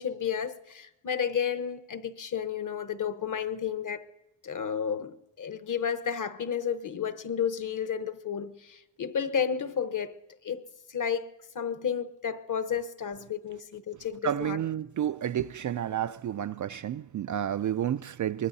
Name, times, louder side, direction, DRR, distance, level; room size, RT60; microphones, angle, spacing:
voice 1, 0.0-4.0 4.4-10.1 10.4-10.6 10.9-14.6, left 7 dB, 40° left, 1.1 m, -32 dB
voice 2, 14.2-18.5, right 10 dB, 45° right, 0.4 m, -30 dB
24.0 x 20.0 x 2.7 m
cardioid pair, 75°, 46 cm